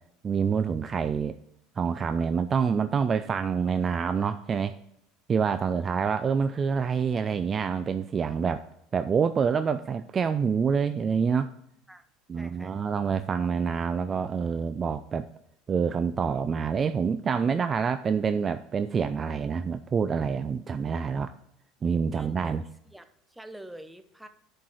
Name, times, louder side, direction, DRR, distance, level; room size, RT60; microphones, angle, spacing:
voice 1, 0.2-1.4 1.8-4.8 5.3-8.6 8.9-11.5 12.3-15.3 15.7-21.3 21.8-22.6, right 6 dB, 30° right, 10 dB, 0.4 m, -27 dB
voice 2, 12.4-12.8 22.1-24.3, right 1 dB, 5° right, 9 dB, 0.9 m, -46 dB
10.5 x 4.6 x 4.8 m, 0.77 s
hypercardioid pair, 70°, 0 cm